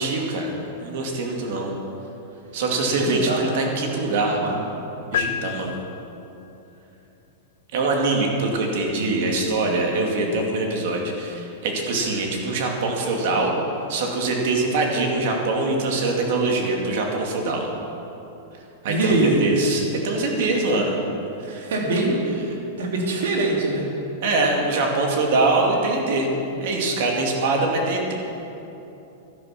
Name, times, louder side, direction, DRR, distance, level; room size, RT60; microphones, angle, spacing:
voice 1, 0.0-1.7 2.5-4.4 5.1-5.7 7.7-13.6 13.9-17.7 18.8-21.0 21.4-21.7 24.2-26.3 26.6-28.1, right 2 dB, 55° right, 1 dB, 2.3 m, -23 dB
voice 2, 2.9-3.4 4.3-4.5 18.8-19.4 21.5-23.9, right 2 dB, 85° right, -1 dB, 3.1 m, -23 dB
sound 1, 5.1-6.4, left 10 dB, 80° left, 0.4 m, -29 dB
12.5 x 11.0 x 5.9 m, 3.0 s
supercardioid pair, 165°, 0 cm